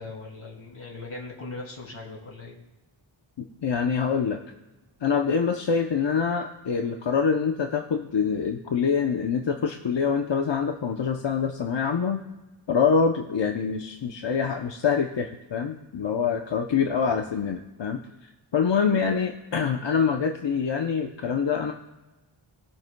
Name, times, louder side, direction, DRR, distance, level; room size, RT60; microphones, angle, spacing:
voice 1, 0.0-2.6, left 3 dB, 80° left, -2 dB, 2.8 m, -39 dB
voice 2, 3.4-4.4 5.0-12.2 12.7-18.0 18.5-21.7, left 6 dB, 60° left, 3 dB, 0.7 m, -25 dB
19.5 x 7.5 x 2.2 m, 1.1 s
wide cardioid pair, 85°, 49 cm